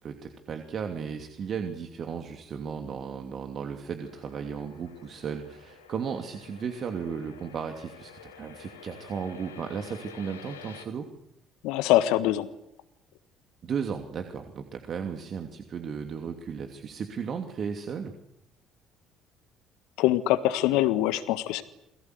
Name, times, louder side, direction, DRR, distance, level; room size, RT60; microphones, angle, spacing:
voice 1, 0.0-11.1 13.6-18.1, right 6 dB, 45° right, 5 dB, 2.9 m, -35 dB
sound 1, 4.0-10.8, left 6 dB, 85° left, 3.0 m, -49 dB
voice 2, 11.6-12.5 20.0-21.6, left 14 dB, 65° left, 13 dB, 1.5 m, -23 dB
30.0 x 22.0 x 8.1 m, 0.79 s
figure-of-eight pair, 50°, 0 cm